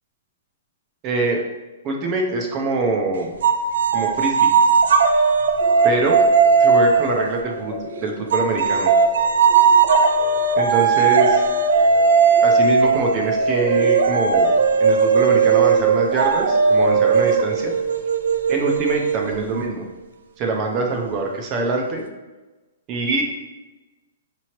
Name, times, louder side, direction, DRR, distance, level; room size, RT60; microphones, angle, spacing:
voice 1, 1.0-1.4 1.8-3.3 3.9-4.5 5.8-6.2 6.6-8.9 10.6-11.4 12.4-17.7 18.5-19.8 20.4-22.0 22.9-23.2, right 3 dB, 20° right, 1 dB, 0.5 m, -24 dB
sound 1, 3.4-7.8 8.3-19.7, right 5 dB, 70° right, 0.4 m, -17 dB
sound 2, 5.6-16.9, equal, 25° left, 0.8 m, -37 dB
5.9 x 3.0 x 2.9 m, 1.1 s
hypercardioid pair, 180°, 0 cm